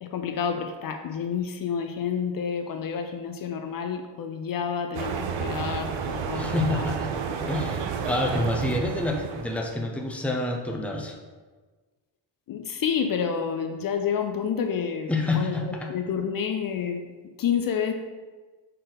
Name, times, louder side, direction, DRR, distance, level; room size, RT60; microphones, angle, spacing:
voice 1, 0.0-6.9 7.3-7.4 12.5-17.1 17.4-17.9, left 7 dB, 50° left, 5 dB, 0.5 m, -29 dB
sound 1, 4.9-9.8, right 6 dB, 75° right, 0.7 m, -31 dB
voice 2, 6.3-7.1 7.4-11.1 15.1-15.9, left 2 dB, 5° left, 1 dB, 0.6 m, -28 dB
6.4 x 4.4 x 3.9 m, 1.4 s
cardioid pair, 140°, 45 cm